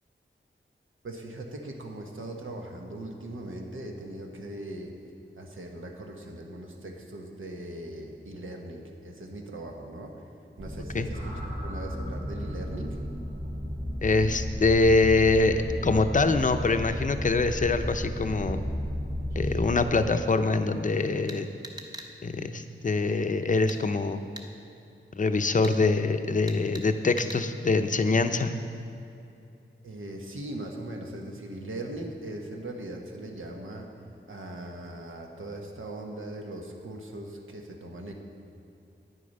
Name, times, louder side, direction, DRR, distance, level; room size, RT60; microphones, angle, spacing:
voice 1, 1.0-5.0 5.3-10.2 10.6-13.0 29.8-33.9 34.3-38.1, right 1 dB, 80° right, 2 dB, 1.2 m, -39 dB
sound 1, 10.6-19.8, equal, 50° right, 2.7 m, -33 dB
voice 2, 14.0-18.6 19.4-21.5 22.2-24.2 25.2-28.5, left 3 dB, 40° left, 9 dB, 0.6 m, -24 dB
sound 2, 21.3-22.1 23.7-23.8 24.4-24.5 25.6-25.8 26.5-26.9 27.2-27.4, right 1 dB, 20° right, 0.9 m, -41 dB
9.5 x 8.4 x 5.4 m, 2.7 s
wide cardioid pair, 80°, 20 cm